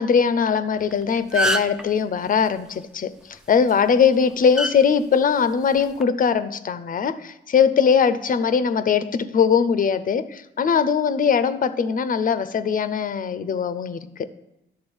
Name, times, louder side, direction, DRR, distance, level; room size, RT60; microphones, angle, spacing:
voice 1, 0.0-14.3, left 6 dB, 45° left, 12 dB, 0.6 m, -21 dB
sound 1, 0.8-0.9 1.2-1.8 3.5-3.7 4.6-4.7 5.8-6.0, right 1 dB, 5° right, 0.5 m, -23 dB
10.5 x 3.8 x 7.1 m, 0.86 s
cardioid pair, 90°, 20 cm